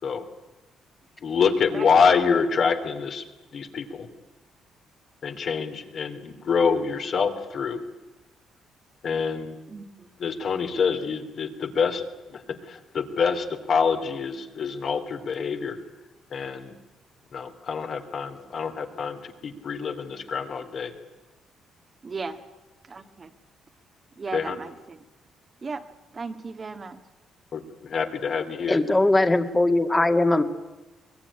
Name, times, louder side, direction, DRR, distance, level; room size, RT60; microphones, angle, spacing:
voice 1, 1.2-3.2 3.5-4.1 5.2-7.8 9.0-9.6 10.2-12.0 12.3-12.4 12.7-15.8 16.3-16.7 17.3-20.9 24.3-24.6 27.5-28.8, left 5 dB, 55° left, 5 dB, 2.9 m, -26 dB
voice 2, 9.7-10.2 22.0-22.4 22.9-23.3 24.2-25.0 25.6-25.9 26.1-27.0, right 4 dB, 35° right, 7 dB, 1.8 m, -36 dB
voice 3, 28.7-30.4, left 2 dB, 15° left, 7 dB, 2.1 m, -20 dB
23.0 x 20.5 x 10.0 m, 1.1 s
cardioid pair, 90°, 0 cm